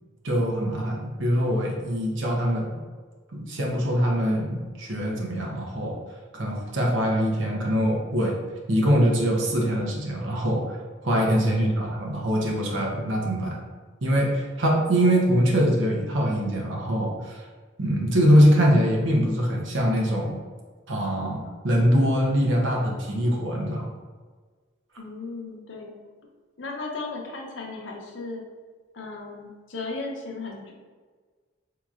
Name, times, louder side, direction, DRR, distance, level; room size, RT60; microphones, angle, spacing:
voice 1, 0.2-2.7 3.3-6.0 6.3-8.4 8.7-10.8 11.0-13.6 14.0-17.4 17.8-20.4 20.9-23.9, equal, 85° right, -1 dB, 0.8 m, -23 dB
voice 2, 11.5-11.8 25.0-25.9 26.6-28.4 28.9-30.7, left 3 dB, 80° left, 0 dB, 0.7 m, -36 dB
4.6 x 2.9 x 2.4 m, 1.4 s
head